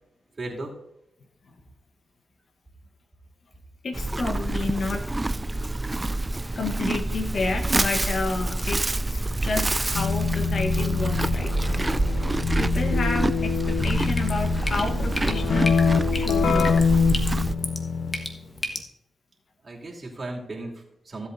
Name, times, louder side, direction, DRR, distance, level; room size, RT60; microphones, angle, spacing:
voice 1, 0.4-0.7 19.6-21.3, right 2 dB, 45° right, -2 dB, 2.7 m, -36 dB
voice 2, 3.8-5.2 6.6-8.8 9.1-11.9 12.6-15.8 16.1-16.9, left 3 dB, 65° left, 6 dB, 1.2 m, -30 dB
Livestock farm animals working animals, 3.9-17.6, right 2 dB, 25° right, 0.3 m, -27 dB
Keyboard (musical), 9.9-18.4, left 5 dB, 85° left, 0.4 m, -25 dB
Drip, 13.7-18.8, left 1 dB, 35° left, 1.4 m, -35 dB
15.5 x 8.0 x 2.6 m, 0.85 s
cardioid pair, 60°, 0 cm